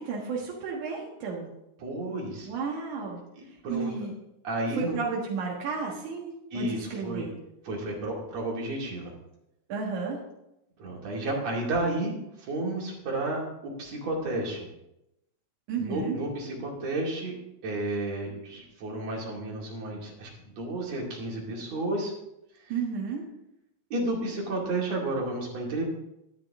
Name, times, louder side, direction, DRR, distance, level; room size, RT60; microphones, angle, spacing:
voice 1, 0.0-1.5 2.5-3.2 3.7-4.1 4.7-7.3 9.7-10.2 15.7-16.2 22.7-23.2, right 5 dB, 90° right, -3 dB, 3.0 m, -32 dB
voice 2, 1.8-2.5 3.4-3.9 4.4-5.0 6.5-7.3 7.7-9.1 10.8-12.1 12.4-14.7 15.8-17.3 17.6-22.1 23.9-25.8, right 2 dB, 65° right, -2 dB, 3.7 m, -32 dB
12.5 x 10.5 x 3.6 m, 0.86 s
omnidirectional pair, 3.4 m